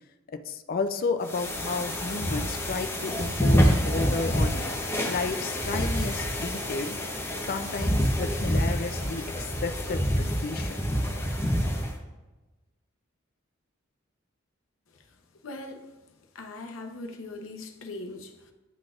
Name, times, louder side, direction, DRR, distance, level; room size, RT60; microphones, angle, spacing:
voice 1, 0.5-4.6 5.1-7.0 7.5-10.8, left 4 dB, 45° left, 8 dB, 0.4 m, -32 dB
sound 1, 1.3-12.0, equal, 10° left, 0.9 m, -27 dB
voice 2, 15.4-15.9 16.3-18.5, left 2 dB, 75° left, 3 dB, 0.7 m, -40 dB
10.0 x 3.9 x 2.5 m, 1.1 s
head